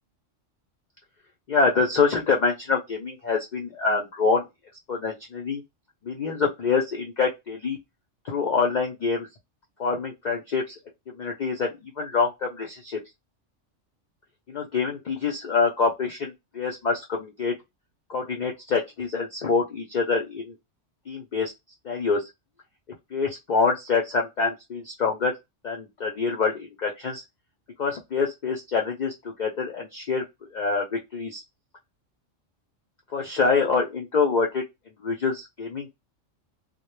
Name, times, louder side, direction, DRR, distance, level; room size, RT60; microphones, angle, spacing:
voice 1, 1.5-4.4 4.9-5.6 6.0-7.8 8.2-9.3 9.8-10.8 11.1-13.0 14.5-17.5 18.1-20.6 21.1-21.5 21.8-22.3 23.1-25.3 25.6-27.2 27.8-31.4 33.1-36.0, left 4 dB, 60° left, 1 dB, 0.4 m, -26 dB
2.1 x 2.1 x 3.0 m, 0.21 s
omnidirectional pair, 1.3 m